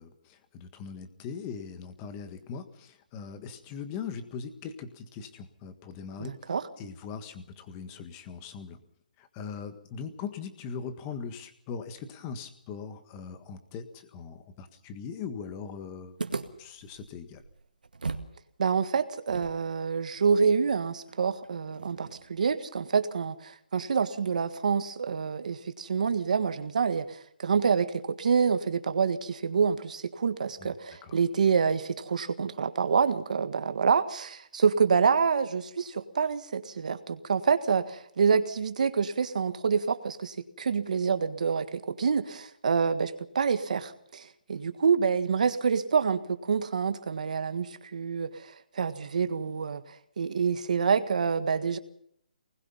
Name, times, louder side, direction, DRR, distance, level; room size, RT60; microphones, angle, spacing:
voice 1, 0.0-8.8 9.2-16.2 16.6-17.4 30.6-30.7 31.0-31.2, left 6 dB, 20° left, 9 dB, 1.6 m, -40 dB
voice 2, 6.2-6.6 18.6-49.8 50.2-51.8, right 6 dB, 60° right, 10 dB, 1.7 m, -27 dB
sound 1, 16.2-18.4 18.6-18.7 19.3-22.4, right 4 dB, 90° right, 2.0 m, -39 dB
24.0 x 20.0 x 5.6 m, 0.69 s
hypercardioid pair, 165°, 5 cm